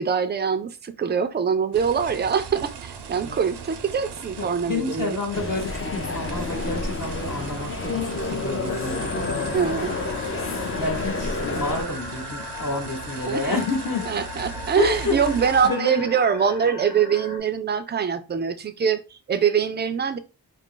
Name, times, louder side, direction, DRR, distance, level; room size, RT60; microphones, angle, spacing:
voice 1, 0.0-5.2 9.5-9.9 13.3-13.5 14.1-20.2, right 7 dB, 25° right, 0.3 m, -24 dB
sound 1, 1.7-15.7, right 6 dB, 70° right, 0.6 m, -38 dB
voice 2, 4.4-9.8 10.8-14.1 14.8-15.2 15.6-16.0, left 2 dB, 50° left, 1.1 m, -29 dB
sound 2, 5.3-11.8, left 3 dB, 35° left, 0.5 m, -29 dB
sound 3, 8.7-17.4, left 4 dB, 85° left, 0.8 m, -38 dB
2.4 x 2.0 x 3.7 m
wide cardioid pair, 55°, 42 cm